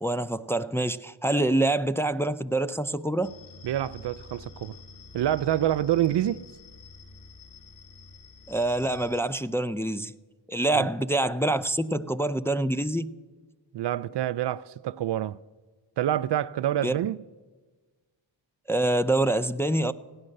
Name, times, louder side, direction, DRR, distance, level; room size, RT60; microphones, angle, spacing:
voice 1, 0.0-3.3 8.5-10.1 10.5-13.1 16.8-17.0 18.7-19.9, right 1 dB, 5° left, 0.4 m, -26 dB
sound 1, 3.2-9.2, left 3 dB, 45° left, 4.5 m, -48 dB
voice 2, 3.6-4.8 5.1-6.4 10.7-10.9 13.7-15.4 16.0-17.2, right 12 dB, 60° right, 0.5 m, -27 dB
16.5 x 9.7 x 6.5 m
cardioid pair, 55°, 46 cm